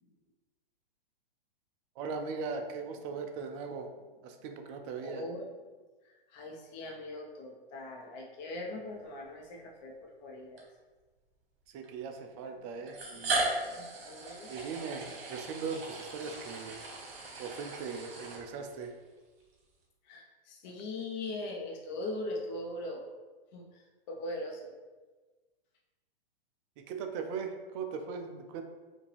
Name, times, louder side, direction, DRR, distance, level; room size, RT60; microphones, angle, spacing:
voice 1, 2.0-3.9 4.2-5.2 11.7-13.5 14.5-16.8 17.4-18.9 26.9-28.6, right 5 dB, 30° right, 5 dB, 0.5 m, -39 dB
voice 2, 4.9-5.4 6.0-10.7 13.6-14.5 20.0-23.0 23.5-24.7, left 2 dB, 45° left, 0 dB, 1.0 m, -41 dB
sound 1, 9.4-9.5 10.6-10.7 11.8-11.9 12.9-18.9, right 2 dB, 65° right, 1.4 m, -37 dB
5.0 x 2.7 x 3.4 m, 1.3 s
hypercardioid pair, 125°, 30 cm